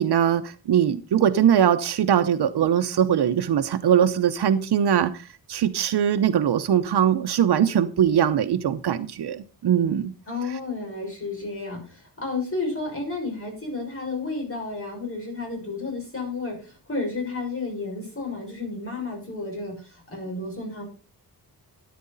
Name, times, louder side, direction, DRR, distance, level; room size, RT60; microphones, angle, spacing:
voice 1, 0.0-10.1, right 9 dB, 85° right, 0.8 m, -21 dB
voice 2, 10.3-20.8, left 3 dB, 35° left, 6.0 m, -32 dB
13.5 x 9.5 x 4.0 m
wide cardioid pair, 160°, 39 cm